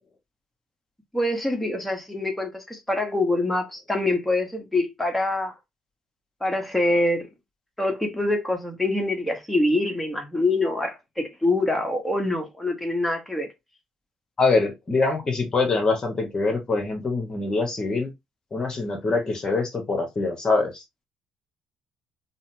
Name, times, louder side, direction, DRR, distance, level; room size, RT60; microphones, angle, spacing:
voice 1, 1.1-5.5 6.4-7.3 7.8-13.5, left 2 dB, 5° left, 1.0 m, -25 dB
voice 2, 14.4-18.1 18.5-20.8, left 3 dB, 35° left, 1.0 m, -24 dB
4.0 x 2.0 x 2.7 m
hypercardioid pair, 55°, 2 cm